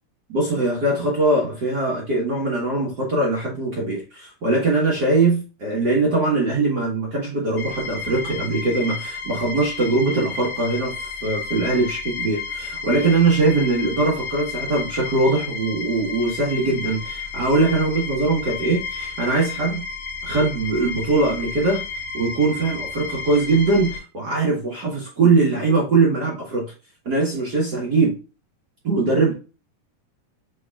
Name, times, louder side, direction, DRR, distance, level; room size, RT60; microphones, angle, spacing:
voice 1, 0.3-19.8 20.2-21.8 22.1-26.7 27.0-28.2 28.8-29.3, right 3 dB, 50° right, 1.2 m, -21 dB
sound 1, 7.6-24.0, left 4 dB, 45° left, 0.9 m, -32 dB
6.9 x 3.1 x 2.3 m
omnidirectional pair, 3.7 m